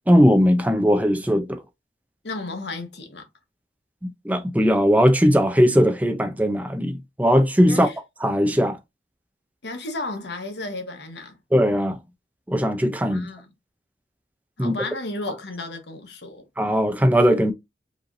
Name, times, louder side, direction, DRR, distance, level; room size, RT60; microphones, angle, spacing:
voice 1, 0.1-1.6 4.0-7.9 8.2-8.8 11.5-12.0 12.5-13.3 14.6-14.8 16.6-17.5, equal, 10° right, 0.6 m, -19 dB
voice 2, 2.2-3.2 7.6-8.0 9.6-11.4 13.1-13.5 14.6-16.4, left 2 dB, 75° left, 1.3 m, -33 dB
5.0 x 3.2 x 2.6 m
head